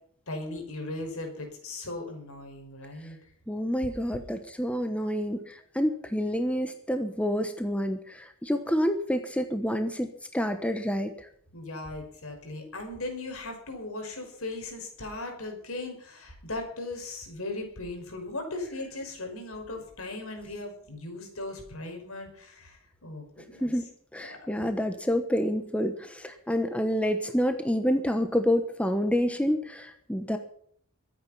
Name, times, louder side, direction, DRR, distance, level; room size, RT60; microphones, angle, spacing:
voice 1, 0.3-3.2 11.5-23.7 24.2-24.7, left 2 dB, 70° left, 4 dB, 5.6 m, -38 dB
voice 2, 3.5-11.3 23.6-23.8 24.1-30.4, equal, 5° left, 7 dB, 1.1 m, -28 dB
22.5 x 9.3 x 5.7 m, 0.62 s
head